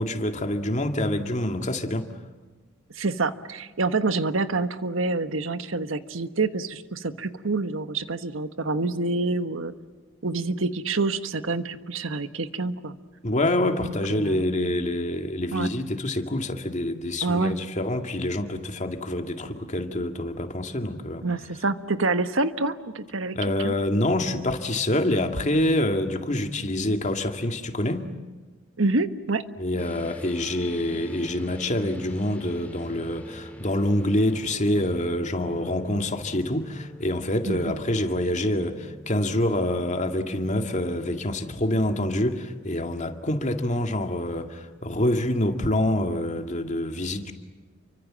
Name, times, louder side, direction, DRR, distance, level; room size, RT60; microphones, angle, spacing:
voice 1, 0.0-2.1 13.2-21.3 23.3-28.1 29.6-47.3, left 1 dB, 35° left, 2.1 m, -26 dB
voice 2, 2.9-9.7 10.2-13.0 13.8-14.5 15.5-15.7 17.2-17.6 21.2-23.3 23.6-23.7 28.8-29.4 37.4-37.7, right 3 dB, 80° right, 1.3 m, -27 dB
sound 1, 29.8-43.9, equal, 5° left, 3.9 m, -45 dB
29.5 x 24.5 x 7.6 m
head